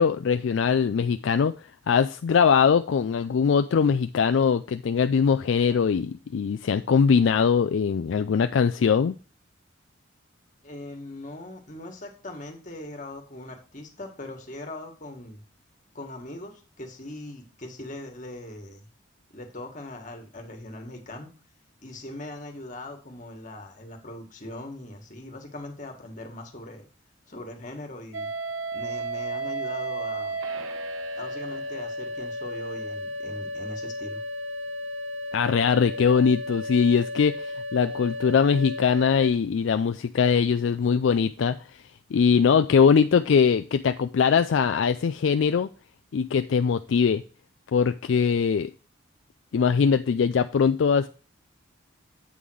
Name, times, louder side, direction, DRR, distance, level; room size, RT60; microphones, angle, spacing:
voice 1, 0.0-1.5 1.9-9.1 35.3-41.6 42.1-45.7 46.1-47.2 47.7-48.7 49.5-51.1, left 6 dB, 70° left, 10 dB, 0.4 m, -21 dB
voice 2, 10.6-15.4 16.0-18.9 19.3-21.3 21.8-26.9 27.3-28.3 28.7-30.4 31.2-34.2, left 1 dB, 40° left, 4 dB, 1.7 m, -40 dB
sound 1, 28.1-39.3, equal, 85° right, 0.9 m, -33 dB
8.4 x 3.7 x 6.2 m, 0.35 s
head